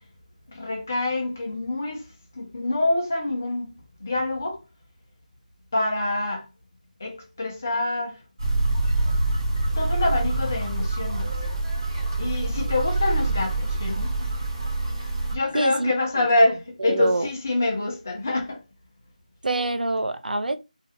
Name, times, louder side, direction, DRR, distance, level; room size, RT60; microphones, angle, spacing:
voice 1, 0.5-2.0 2.4-3.7 4.0-4.6 5.7-6.4 7.0-8.2 9.8-11.3 12.2-14.1 15.3-18.6, left 2 dB, 20° left, 0.4 m, -26 dB
sound 1, 8.4-15.3, right 2 dB, 25° right, 0.8 m, -25 dB
voice 2, 15.5-16.3 16.8-17.3 19.4-20.6, right 2 dB, 80° right, 0.5 m, -26 dB
2.3 x 2.2 x 3.0 m
figure-of-eight pair, 175°, 5 cm